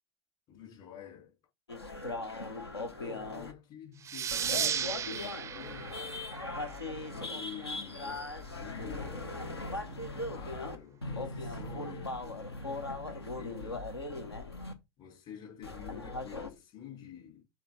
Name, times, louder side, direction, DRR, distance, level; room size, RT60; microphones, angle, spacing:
voice 1, 0.5-1.3 2.8-6.1 7.0-12.5 13.0-13.9 15.0-17.4, left 8 dB, 50° left, 4.2 m, -48 dB
sound 1, 1.7-3.5 4.3-10.8 11.0-14.7 15.6-16.5, left 2 dB, 90° left, 0.9 m, -39 dB
sound 2, 4.0-7.3, right 8 dB, 20° right, 0.4 m, -35 dB
6.9 x 3.7 x 3.9 m
figure-of-eight pair, 80°, 13 cm